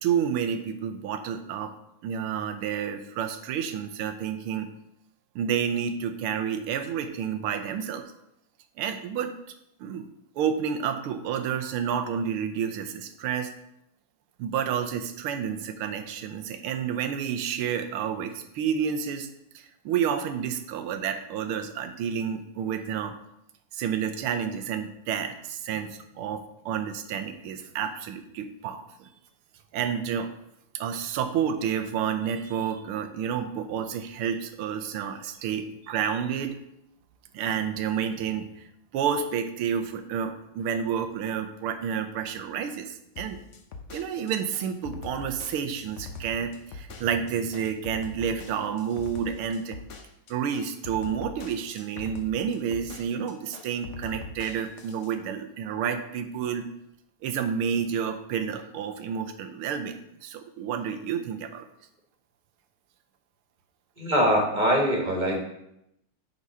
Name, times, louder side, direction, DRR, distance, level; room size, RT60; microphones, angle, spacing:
voice 1, 0.0-1.7 2.0-4.7 5.4-8.1 8.8-9.3 9.8-10.1 10.4-13.5 14.4-19.3 19.6-23.1 23.7-29.1 29.7-30.3 30.7-36.6 37.3-38.6 38.9-43.4 43.9-49.8 50.3-56.6 57.2-61.7, right 8 dB, 80° right, 8 dB, 1.6 m, -30 dB
sound 1, 43.2-55.1, left 3 dB, 60° left, 0.7 m, -42 dB
voice 2, 64.0-65.4, equal, 25° right, 0 dB, 1.5 m, -23 dB
9.7 x 4.0 x 5.5 m, 0.80 s
omnidirectional pair, 2.4 m